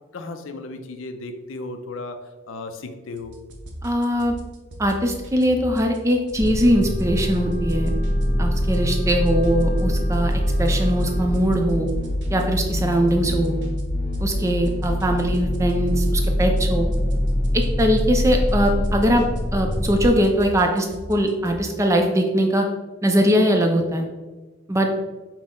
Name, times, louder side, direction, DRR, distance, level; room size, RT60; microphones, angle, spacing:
voice 1, 0.1-2.2 2.5-3.4, left 2 dB, 80° left, 7 dB, 0.5 m, -35 dB
sound 1, 3.2-21.6, right 1 dB, 65° right, 0.6 m, -38 dB
voice 2, 3.8-4.3 4.8-8.0 8.4-11.9 12.3-13.6 14.2-16.9 17.5-19.2 19.5-22.7 23.0-24.0 24.7-24.9, equal, 15° right, 3 dB, 0.4 m, -21 dB
sound 2, 6.4-20.1, equal, 45° left, 0.7 m, -24 dB
Wind instrument woodwind instrument, 6.5-11.4, right 5 dB, 15° left, 1.0 m, -40 dB
5.8 x 2.0 x 3.7 m, 1.2 s
head